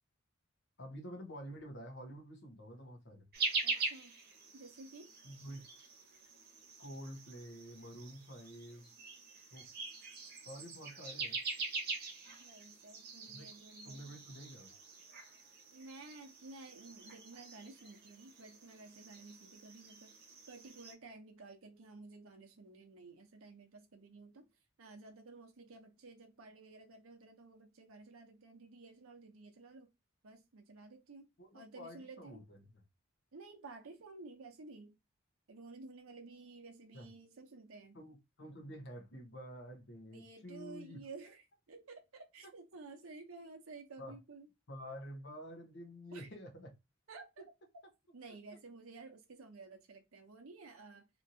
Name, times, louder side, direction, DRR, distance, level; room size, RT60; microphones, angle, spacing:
voice 1, 0.8-3.3 5.2-5.6 6.8-8.9 9.5-9.7 10.4-11.4 13.3-13.5 13.8-14.7 31.4-32.7 36.9-37.1 37.9-41.0 44.0-44.2 44.7-46.7, equal, 55° left, 0.9 m, -49 dB
sound 1, 3.3-20.9, right 4 dB, 50° right, 1.0 m, -44 dB
voice 2, 3.6-4.2 4.5-5.1 12.3-14.1 15.7-20.2 20.5-24.5 24.8-29.9 30.2-31.3 31.5-32.4 33.3-35.0 35.5-38.0 40.1-44.5 46.1-46.3 47.1-47.3 48.1-51.1, right 3 dB, 85° right, 0.7 m, -53 dB
2.9 x 2.6 x 2.6 m
head